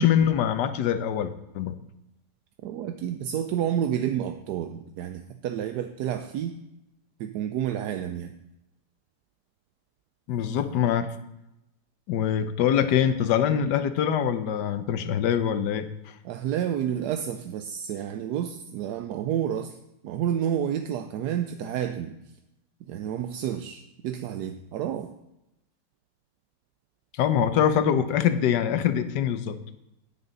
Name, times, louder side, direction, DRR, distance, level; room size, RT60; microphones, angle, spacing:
voice 1, 0.0-1.7 10.3-11.1 12.1-15.9 27.2-29.6, left 9 dB, 75° left, 11 dB, 1.3 m, -24 dB
voice 2, 2.6-6.6 7.2-8.3 16.2-19.8 20.0-22.2 22.9-25.1, right 10 dB, 75° right, 7 dB, 1.1 m, -30 dB
9.8 x 9.4 x 3.9 m, 0.89 s
omnidirectional pair, 1.9 m